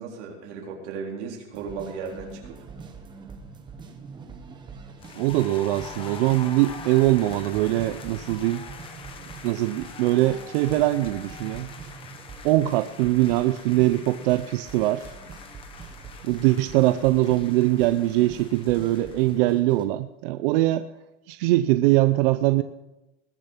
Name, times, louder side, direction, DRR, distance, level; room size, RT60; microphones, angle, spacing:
voice 1, 0.0-2.6, right 5 dB, 75° right, -1 dB, 4.0 m, -35 dB
sound 1, 1.5-19.8, right 5 dB, 15° right, 0.9 m, -44 dB
sound 2, 5.0-19.6, left 6 dB, 15° left, 0.7 m, -44 dB
voice 2, 5.1-8.6 9.4-11.7 12.4-15.1 16.2-20.9 21.3-22.6, right 16 dB, 50° right, 12 dB, 0.5 m, -22 dB
20.5 x 6.9 x 5.7 m, 0.97 s
supercardioid pair, 175°, 35 cm